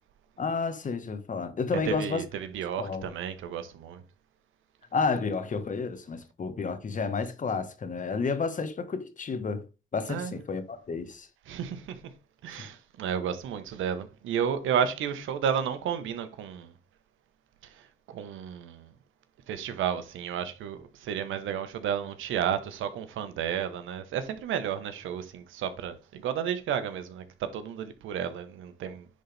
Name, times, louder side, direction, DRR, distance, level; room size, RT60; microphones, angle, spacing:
voice 1, 0.4-2.2 2.8-3.1 4.9-9.6 9.9-11.3 12.6-12.7, left 4 dB, 40° left, 1.5 m, -31 dB
voice 2, 1.7-4.0 10.1-10.4 11.5-12.0 12.4-16.7 17.6-18.9 19.5-29.1, right 8 dB, 85° right, 1.3 m, -32 dB
10.0 x 4.3 x 3.4 m
cardioid pair, 90°, 20 cm